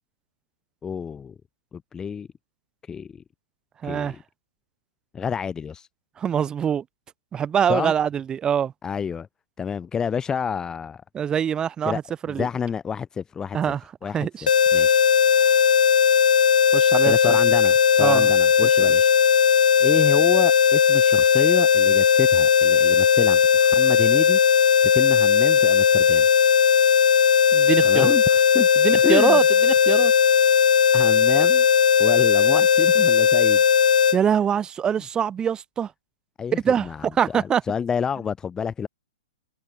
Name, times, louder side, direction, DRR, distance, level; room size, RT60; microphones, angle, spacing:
voice 1, 0.8-1.3 1.7-2.3 2.9-3.2 3.8-4.2 5.1-5.9 7.7-7.9 8.8-9.3 9.6-11.0 11.8-12.0 12.3-13.6 14.0-15.0 17.0-19.1 19.8-24.4 24.9-26.3 27.9-28.7 29.0-29.4 30.9-31.6 32.0-33.6 36.4-38.9, left 7 dB, 15° left, 1.5 m, -29 dB
voice 2, 3.8-4.2 6.2-6.8 7.3-8.7 11.1-12.5 13.5-13.8 14.1-14.5 16.7-17.4 18.0-18.3 18.6-18.7 27.5-28.1 28.8-30.1 34.1-35.9 36.5-37.6, right 8 dB, 20° right, 3.7 m, -24 dB
sound 1, 14.5-34.2, left 7 dB, 80° left, 0.4 m, -17 dB
hypercardioid pair, 125°, 4 cm